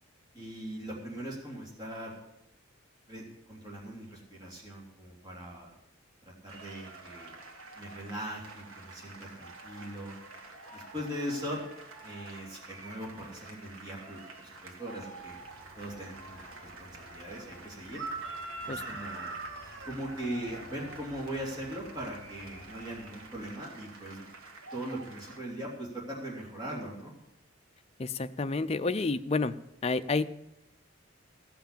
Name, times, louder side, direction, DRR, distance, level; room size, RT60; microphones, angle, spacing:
voice 1, 0.3-2.1 3.1-5.7 6.2-7.3 7.7-10.1 10.7-11.6 12.0-15.4 15.7-18.0 18.6-19.4 19.8-24.3 24.7-27.1, right 1 dB, 20° right, -4 dB, 2.8 m, -40 dB
sound 1, 6.5-25.4, right 3 dB, 85° right, 1.7 m, -49 dB
Chicken rooster, 15.2-23.5, right 3 dB, 55° right, 1.9 m, -44 dB
voice 2, 28.0-29.5 29.8-30.3, left 3 dB, 30° left, 11 dB, 0.4 m, -29 dB
15.5 x 5.9 x 8.5 m, 0.86 s
head